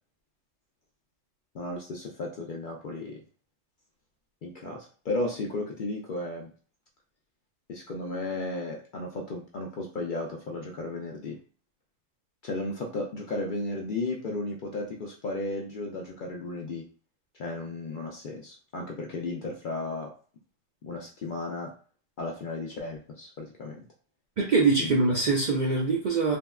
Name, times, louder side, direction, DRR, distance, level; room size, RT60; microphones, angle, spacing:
voice 1, 1.5-3.2 4.4-6.5 7.7-11.4 12.4-16.9 17.3-20.1 20.8-21.7 22.2-23.8 24.8-25.0, left 2 dB, 60° left, 0 dB, 0.5 m, -34 dB
voice 2, 24.4-26.4, right 3 dB, 60° right, -3 dB, 0.5 m, -23 dB
3.5 x 2.2 x 2.3 m, 0.40 s
omnidirectional pair, 1.2 m